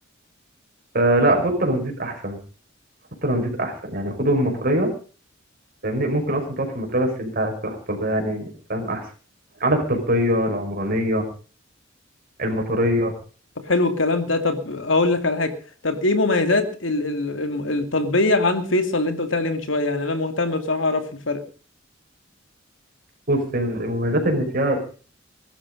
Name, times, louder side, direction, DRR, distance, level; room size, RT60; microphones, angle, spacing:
voice 1, 0.9-2.4 3.2-4.9 5.8-9.0 9.6-11.3 12.4-13.1 23.3-24.9, right 1 dB, 50° right, 4 dB, 5.3 m, -23 dB
voice 2, 13.7-15.5 15.8-21.4, left 2 dB, 80° left, 8 dB, 2.6 m, -22 dB
21.5 x 12.0 x 5.3 m, 0.39 s
head